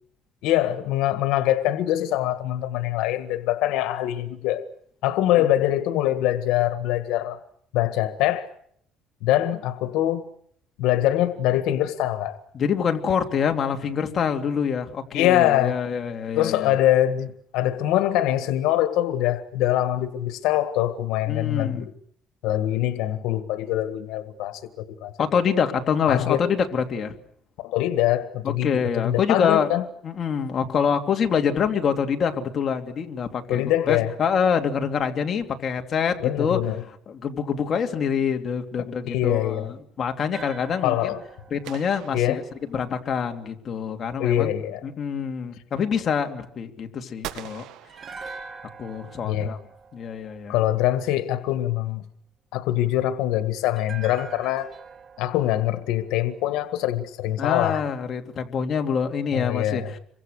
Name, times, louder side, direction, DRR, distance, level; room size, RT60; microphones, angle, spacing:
voice 1, 0.4-4.6 5.0-7.4 7.7-8.5 9.2-10.2 10.8-12.4 15.1-15.8 16.4-21.9 22.4-25.1 26.1-26.5 27.6-29.8 33.5-34.1 36.2-36.8 38.8-39.7 40.8-41.2 42.1-42.4 44.2-44.8 49.2-49.5 50.5-52.0 52.5-54.7 55.2-57.8 59.3-59.9, left 13 dB, 90° left, 1.7 m, -24 dB
voice 2, 12.5-16.7 21.3-21.9 25.2-27.1 28.4-29.7 30.0-36.6 37.1-41.0 41.5-42.4 42.7-44.5 44.8-47.6 48.8-49.6 49.9-50.5 57.4-59.8, left 7 dB, 40° left, 2.8 m, -25 dB
sound 1, 40.3-43.5 47.9-51.1 53.8-57.0 57.2-57.4, right 4 dB, 35° right, 2.2 m, -44 dB
sound 2, 41.6-43.1 47.2-48.8, right 12 dB, 85° right, 2.0 m, -41 dB
28.0 x 24.0 x 6.6 m
cardioid pair, 140°, 0 cm